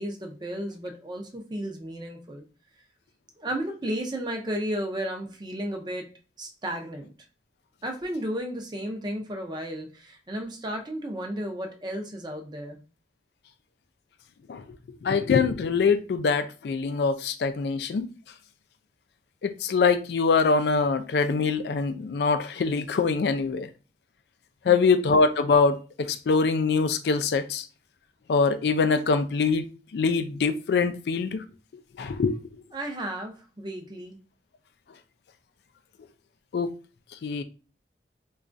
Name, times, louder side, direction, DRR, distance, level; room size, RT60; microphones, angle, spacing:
voice 1, 0.0-2.4 3.4-6.1 6.4-7.1 7.8-12.8 24.7-25.0 32.7-34.2, right 1 dB, 25° right, 0.6 m, -33 dB
voice 2, 15.0-18.0 19.4-23.7 24.7-27.6 28.3-29.7 29.9-31.4 32.0-32.4 36.5-36.7 37.2-37.4, left 4 dB, 65° left, 0.3 m, -23 dB
4.1 x 2.3 x 2.5 m
head